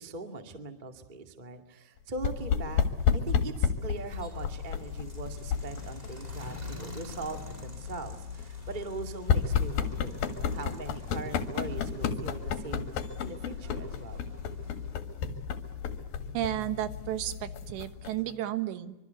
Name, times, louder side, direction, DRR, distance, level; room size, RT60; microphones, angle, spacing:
voice 1, 0.0-2.8 3.1-12.9 13.2-14.2, right 3 dB, 35° right, 6 dB, 0.7 m, -41 dB
sound 1, 2.2-18.3, left 7 dB, 60° left, 3.2 m, -32 dB
sound 2, 3.9-15.0, equal, 15° right, 1.8 m, -50 dB
voice 2, 16.3-19.0, right 13 dB, 75° right, 11 dB, 3.4 m, -33 dB
25.0 x 24.5 x 8.2 m, 1.0 s
omnidirectional pair, 5.2 m